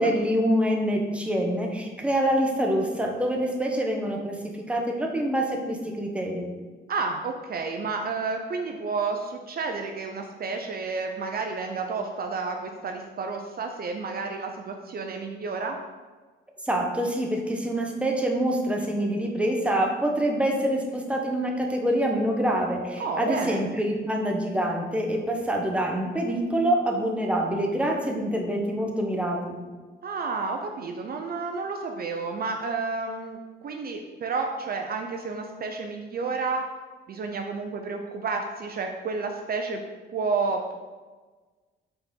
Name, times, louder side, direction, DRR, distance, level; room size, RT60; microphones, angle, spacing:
voice 1, 0.0-6.5 16.6-29.5, right 1 dB, 5° right, 1 dB, 1.1 m, -26 dB
voice 2, 6.9-15.8 23.0-23.6 30.0-33.4 33.6-36.7 37.1-39.8 40.1-40.7, right 4 dB, 50° right, 3 dB, 0.7 m, -30 dB
5.6 x 4.2 x 5.4 m, 1.3 s
cardioid pair, 90°, 20 cm